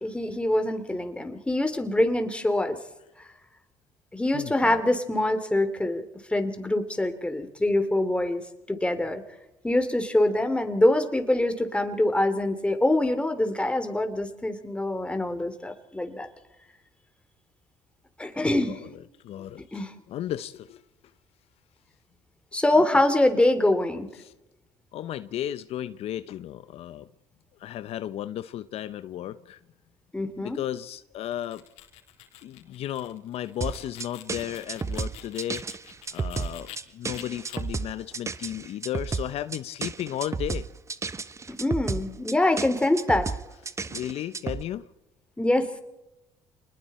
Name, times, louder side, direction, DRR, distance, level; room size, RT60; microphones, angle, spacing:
voice 1, 0.0-2.8 4.1-6.1 6.3-8.4 8.7-9.2 9.6-16.3 18.2-18.8 19.7-19.9 22.5-24.1 30.1-30.6 41.5-43.3 45.4-45.8, left 1 dB, 10° left, 3.3 m, -24 dB
voice 2, 4.3-4.8 18.4-20.8 22.8-23.0 24.2-24.3 24.9-27.1 27.6-29.6 30.4-31.6 32.4-35.6 36.1-40.7 43.9-44.8, left 12 dB, 65° left, 0.9 m, -34 dB
sound 1, 31.3-36.8 37.1-37.6, left 14 dB, 80° left, 3.9 m, -47 dB
sound 2, 33.6-44.6, right 4 dB, 25° right, 1.1 m, -32 dB
28.5 x 20.5 x 4.4 m
supercardioid pair, 75°, 11 cm